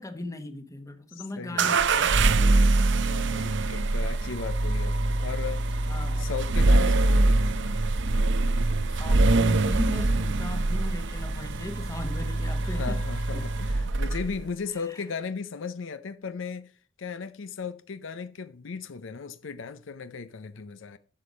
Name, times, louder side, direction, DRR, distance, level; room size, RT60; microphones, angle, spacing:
voice 1, 0.0-2.5 5.9-6.3 8.8-13.0 13.3-13.4 14.7-15.0, left 1 dB, 15° left, 1.1 m, -38 dB
voice 2, 1.1-1.8 3.1-7.5 12.6-16.7 17.0-21.0, left 5 dB, 65° left, 0.6 m, -37 dB
sound 1, 1.6-14.4, right 2 dB, 60° right, 0.7 m, -24 dB
11.5 x 6.7 x 5.2 m
head